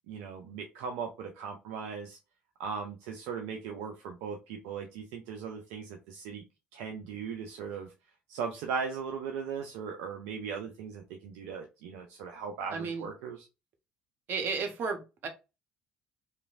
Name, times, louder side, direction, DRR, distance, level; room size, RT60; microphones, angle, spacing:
voice 1, 0.1-2.2 2.6-6.4 6.7-7.9 8.3-13.5, right 6 dB, 70° right, 3 dB, 0.5 m, -38 dB
voice 2, 12.7-13.1 14.3-15.3, right 5 dB, 50° right, 5 dB, 0.8 m, -33 dB
3.0 x 2.5 x 2.4 m, 0.27 s
hypercardioid pair, 55°, 5 cm